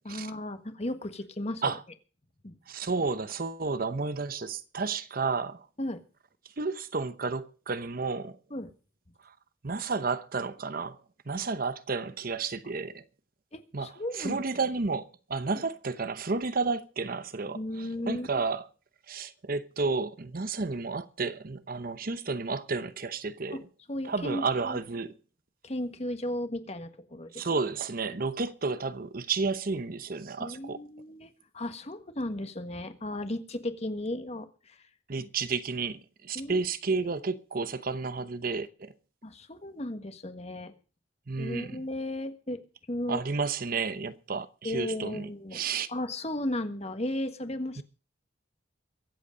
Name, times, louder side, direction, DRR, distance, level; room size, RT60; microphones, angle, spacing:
voice 1, 0.0-1.8 2.4-2.6 5.8-6.0 8.5-8.7 13.5-14.4 15.5-15.6 17.5-18.3 23.5-23.6 23.9-24.8 25.6-27.3 30.4-34.8 35.2-35.3 36.3-36.6 39.2-40.7 41.4-42.6 42.9-43.2 44.6-45.6 45.9-47.8, left 1 dB, 35° left, 1.5 m, -35 dB
voice 2, 2.7-5.7 6.6-8.4 9.2-9.3 9.6-11.0 11.3-13.0 13.7-18.7 19.1-23.7 24.0-25.1 27.3-30.8 35.1-38.9 41.3-41.8 43.1-45.9 47.8-47.9, right 4 dB, 50° right, 0.9 m, -32 dB
23.0 x 8.3 x 5.2 m
head